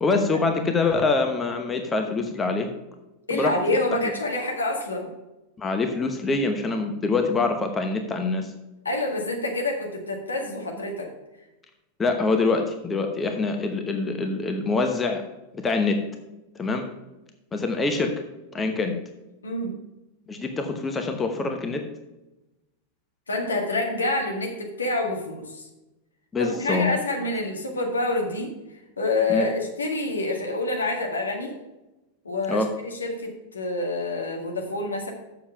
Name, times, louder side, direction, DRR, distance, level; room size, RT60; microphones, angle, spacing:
voice 1, 0.0-2.7 3.3-3.5 5.6-8.5 12.0-15.2 15.5-16.0 16.6-16.9 17.5-18.1 18.5-19.0 20.3-21.8 26.3-27.0 29.3-29.5 32.5-32.7, left 3 dB, 15° left, 5 dB, 0.9 m, -25 dB
voice 2, 3.3-5.1 8.9-11.1 19.4-19.8 23.3-25.7 26.4-28.5 29.0-31.5 32.3-35.1, left 2 dB, 75° left, 1 dB, 1.8 m, -27 dB
7.3 x 6.7 x 5.8 m, 0.99 s
figure-of-eight pair, 90°, 0 cm